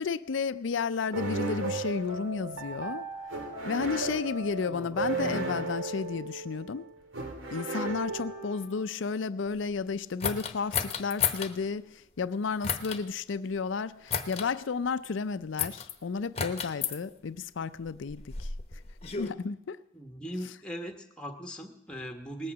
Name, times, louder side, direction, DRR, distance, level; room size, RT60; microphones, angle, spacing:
voice 1, 0.0-3.1 3.7-6.9 7.5-18.5 19.2-19.8, left 5 dB, 75° left, 0.5 m, -32 dB
sound 1, 1.1-8.8, right 2 dB, 90° right, 2.3 m, -35 dB
voice 2, 4.7-5.0 19.9-22.5, equal, 5° left, 1.1 m, -39 dB
sound 2, 10.2-11.5 12.6-13.0 14.1-14.5 15.6-15.9 16.4-17.0 17.9-19.3, left 7 dB, 30° left, 0.9 m, -32 dB
19.0 x 8.6 x 7.2 m
head